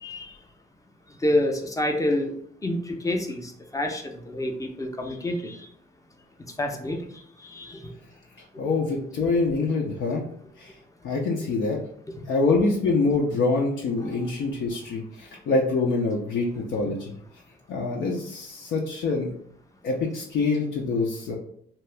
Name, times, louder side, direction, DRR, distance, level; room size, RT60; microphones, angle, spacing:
voice 1, 0.0-0.4 1.2-2.3 2.6-5.7 6.6-7.9 12.2-12.3, left 1 dB, 15° left, 3 dB, 0.5 m, -28 dB
voice 2, 8.6-10.2 10.6-10.7 11.0-11.8 12.3-17.1 17.7-19.3 19.8-21.4, left 3 dB, 75° left, -2 dB, 0.6 m, -25 dB
2.9 x 2.3 x 3.2 m, 0.66 s
cardioid pair, 90°, 20 cm